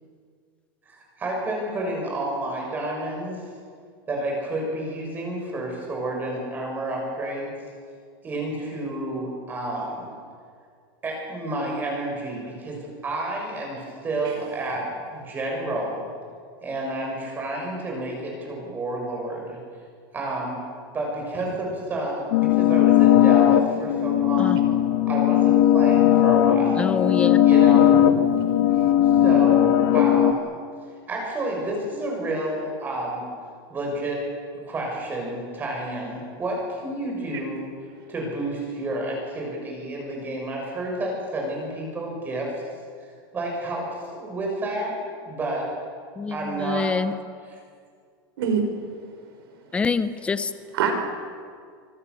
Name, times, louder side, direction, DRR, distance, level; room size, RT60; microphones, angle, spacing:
voice 1, 0.9-3.4 4.1-7.5 8.2-10.1 11.0-14.9 15.1-16.0 16.6-19.6 20.1-20.6 20.9-24.6 25.1-26.9 27.4-27.9 29.0-30.5 31.1-33.2 33.7-34.2 34.6-37.6 38.1-42.5 43.3-45.0 45.3-45.7 46.3-46.9, right 1 dB, 15° right, -1 dB, 6.8 m, -30 dB
sound 1, 22.3-30.3, left 11 dB, 70° left, 1.7 m, -18 dB
voice 2, 26.8-27.4 46.2-47.1 49.7-50.5, left 4 dB, 10° left, 12 dB, 0.8 m, -25 dB
voice 3, 27.7-28.1 28.7-28.8 48.4-48.6 49.0-49.2 50.7-50.9, right 7 dB, 90° right, 5 dB, 5.7 m, -26 dB
25.0 x 25.0 x 7.1 m, 2.1 s
supercardioid pair, 180°, 12 cm